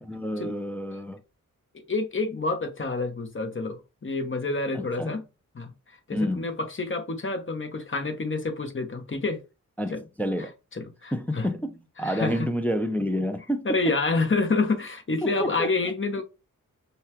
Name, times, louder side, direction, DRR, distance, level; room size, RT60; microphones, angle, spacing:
voice 1, 0.0-1.2 4.7-5.2 6.1-6.6 9.8-10.5 11.1-14.0 15.2-15.9, equal, 5° left, 0.5 m, -29 dB
voice 2, 1.9-5.2 5.5-5.7 6.1-9.4 9.9-10.0 10.7-11.5 12.0-12.5 13.6-16.2, left 3 dB, 35° left, 1.0 m, -28 dB
5.4 x 2.2 x 2.9 m
cardioid pair, 60°, 34 cm